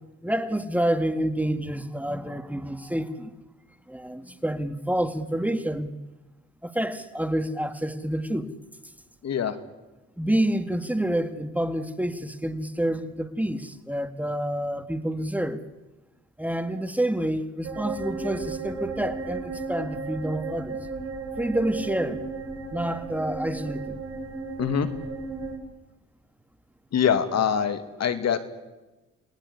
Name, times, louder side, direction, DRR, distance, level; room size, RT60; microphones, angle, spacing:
voice 1, 0.2-3.3 3.9-5.9 6.6-8.5 10.2-15.6 16.4-20.8 21.4-22.2 22.7-24.0, right 1 dB, 5° right, 2.0 m, -28 dB
voice 2, 9.2-9.5 24.6-24.9 26.9-28.4, left 8 dB, 60° left, 2.6 m, -24 dB
sound 1, 17.6-25.6, right 4 dB, 55° right, 6.0 m, -34 dB
29.5 x 20.0 x 9.9 m
cardioid pair, 90°, 30 cm